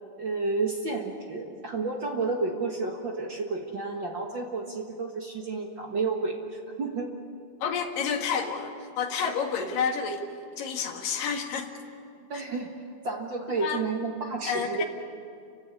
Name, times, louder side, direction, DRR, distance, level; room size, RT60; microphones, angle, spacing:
voice 1, 0.2-7.1 12.3-12.7 13.0-14.8, right 3 dB, 45° right, 1 dB, 1.6 m, -31 dB
voice 2, 7.6-10.2 10.6-11.7 13.6-13.8 14.5-14.9, left 6 dB, 75° left, 2 dB, 3.5 m, -29 dB
28.5 x 16.0 x 9.7 m, 2.4 s
omnidirectional pair, 4.0 m